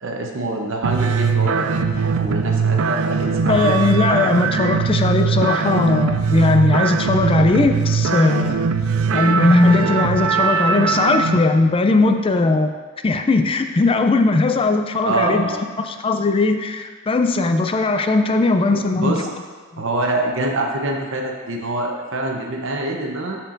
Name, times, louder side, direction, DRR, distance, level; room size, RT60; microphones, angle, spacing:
voice 1, 0.0-3.7 9.1-9.4 15.0-15.6 18.7-19.3 19.8-23.4, right 2 dB, 65° right, 1 dB, 0.9 m, -25 dB
sound 1, 0.8-11.4, right 5 dB, 80° right, 0.4 m, -20 dB
voice 2, 3.5-8.5 9.1-12.7 13.0-15.5 15.8-19.2 19.7-19.8, left 3 dB, 25° left, 6 dB, 0.4 m, -18 dB
13.0 x 4.5 x 2.6 m, 1.5 s
head